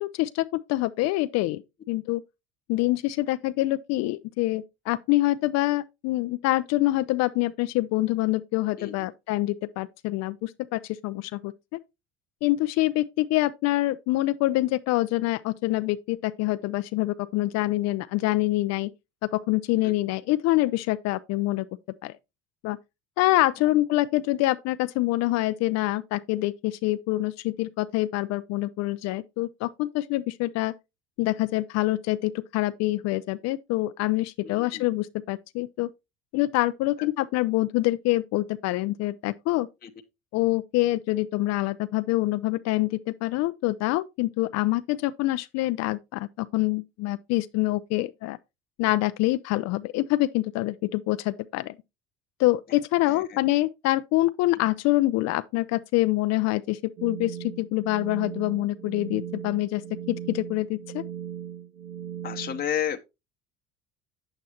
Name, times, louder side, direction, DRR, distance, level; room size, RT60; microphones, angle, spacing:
voice 1, 0.0-1.6 1.9-2.2 2.7-11.8 12.4-18.9 19.2-21.7 22.0-22.1 22.6-22.8 23.2-30.7 31.2-35.9 36.3-39.7 40.3-48.4 48.8-51.8 52.4-59.8 60.1-61.0, left 18 dB, 55° left, 0.4 m, -26 dB
voice 2, 34.4-34.8 37.0-37.1 39.8-39.9 53.1-53.4 62.2-63.0, left 9 dB, 30° left, 0.8 m, -32 dB
sound 1, 57.0-62.6, right 9 dB, 75° right, 1.7 m, -38 dB
8.2 x 7.8 x 2.8 m
hypercardioid pair, 70°, 31 cm